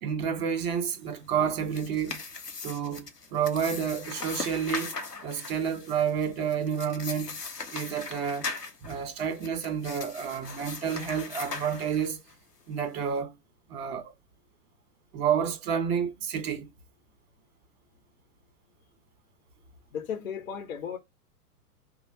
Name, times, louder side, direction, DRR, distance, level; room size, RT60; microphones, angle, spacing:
voice 1, 0.0-2.2 2.6-5.0 5.2-7.4 7.7-8.5 8.8-12.2 12.7-13.3 13.7-14.1 15.1-16.7, right 7 dB, 40° right, 1.3 m, -30 dB
sound 1, 1.4-12.3, left 4 dB, 90° left, 0.9 m, -39 dB
voice 2, 19.9-21.0, left 7 dB, 55° left, 0.9 m, -35 dB
5.3 x 2.1 x 3.2 m
figure-of-eight pair, 105°, 46 cm